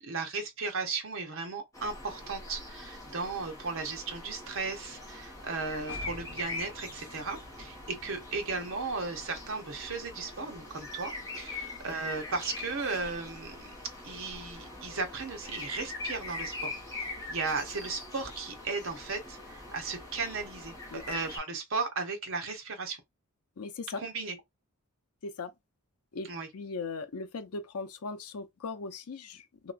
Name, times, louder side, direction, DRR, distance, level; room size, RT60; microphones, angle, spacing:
voice 1, 0.0-13.7 14.0-16.7 17.0-23.0 24.0-24.4 26.3-26.5, right 4 dB, 60° right, 0.8 m, -36 dB
sound 1, 1.7-21.4, left 2 dB, 15° left, 1.0 m, -43 dB
sound 2, 5.9-11.4, equal, 45° left, 1.7 m, -51 dB
voice 2, 23.6-24.0 25.2-25.5 26.1-26.3 26.5-29.7, left 4 dB, 85° left, 0.5 m, -38 dB
3.0 x 2.9 x 2.4 m
head